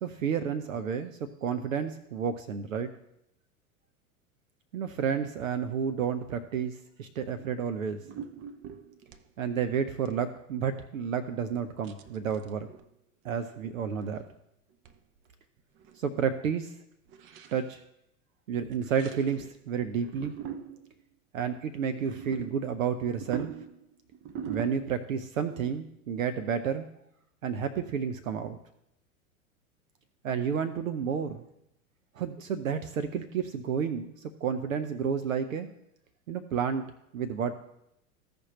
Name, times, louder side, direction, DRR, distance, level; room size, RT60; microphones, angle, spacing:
voice 1, 0.0-2.9 4.7-8.0 9.4-12.7 13.2-14.2 16.0-16.7 17.5-17.8 18.5-20.3 21.3-23.5 24.5-26.9 27.4-28.6 30.2-31.4 32.1-35.7 36.3-37.5, right 7 dB, 70° right, 9 dB, 0.7 m, -31 dB
sound 1, 7.4-7.6 8.0-9.3 9.8-10.2 10.5-10.6 11.8-12.9 13.3-13.7 13.9-14.3 14.8-15.0 15.3-15.4 15.6-16.0 16.2-16.3 17.1-17.7 18.7-19.6 19.9-21.0 21.9-25.2 25.6-25.8, right 8 dB, 30° right, 0.6 m, -42 dB
15.0 x 5.1 x 3.0 m, 0.80 s
figure-of-eight pair, 90°, 43 cm